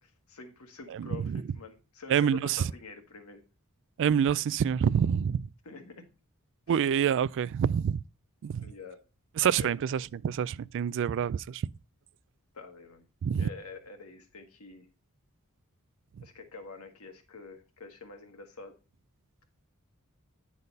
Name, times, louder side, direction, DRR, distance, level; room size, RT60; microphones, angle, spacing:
voice 1, 0.0-3.4 5.6-6.0 6.7-6.8 8.6-9.0 9.4-9.8 12.5-13.0 13.4-14.9 16.2-18.7, left 4 dB, 85° left, 1.7 m, -46 dB
voice 2, 0.9-1.4 2.1-2.6 4.0-5.5 6.7-8.0 8.4-8.6 9.4-11.6 13.2-13.5, right 8 dB, 60° right, 0.3 m, -27 dB
9.8 x 4.1 x 5.2 m
head